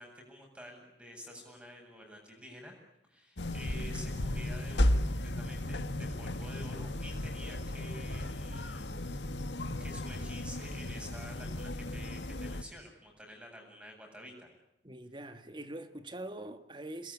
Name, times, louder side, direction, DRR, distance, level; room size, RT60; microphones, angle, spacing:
voice 1, 0.0-2.7 3.1-9.3 9.8-14.5, equal, 5° right, 7.8 m, -49 dB
sound 1, 3.4-12.6, left 1 dB, 85° left, 1.7 m, -34 dB
voice 2, 14.8-17.1, right 1 dB, 25° right, 1.8 m, -43 dB
28.0 x 21.5 x 10.0 m
head